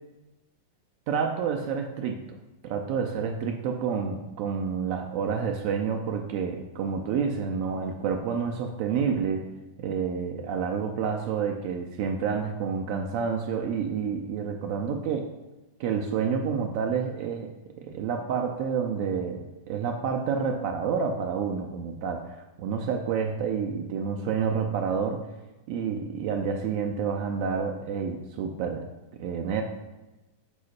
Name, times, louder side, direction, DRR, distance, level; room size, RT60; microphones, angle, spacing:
voice 1, 1.1-2.2 2.6-9.4 9.8-15.3 15.8-17.5 17.8-25.3 25.7-28.8 29.2-29.6, right 6 dB, 45° right, 4 dB, 0.3 m, -29 dB
5.2 x 2.0 x 3.0 m, 1.0 s
figure-of-eight pair, 90°, 0 cm